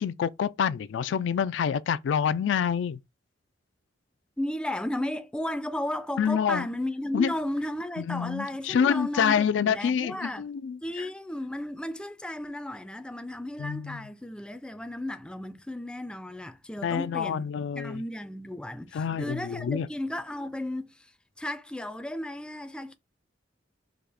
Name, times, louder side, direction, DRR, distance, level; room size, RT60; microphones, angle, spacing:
voice 1, 0.0-3.0 6.2-6.7 7.1-7.3 8.1-10.8 13.6-14.0 16.8-18.0 18.9-19.9, left 7 dB, 80° left, 0.3 m, -27 dB
voice 2, 4.4-10.5 10.8-17.5 17.8-21.1 21.4-22.9, left 1 dB, 5° left, 0.4 m, -34 dB
4.9 x 2.3 x 3.4 m
head